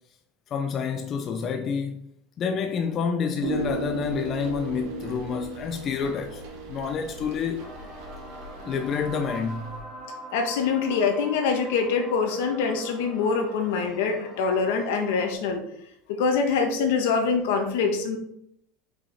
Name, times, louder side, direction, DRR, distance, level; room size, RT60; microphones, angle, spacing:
voice 1, 0.5-2.1 2.4-6.4 6.7-7.6 8.6-9.8, left 6 dB, 35° left, 0.6 m, -28 dB
sound 1, 3.4-9.8, right 4 dB, 70° right, 1.9 m, -37 dB
sound 2, 7.6-15.3, right 1 dB, 5° right, 2.2 m, -43 dB
voice 2, 10.3-15.6 16.1-18.2, left 5 dB, 80° left, 1.4 m, -24 dB
5.7 x 5.3 x 4.2 m
supercardioid pair, 130°, 0 cm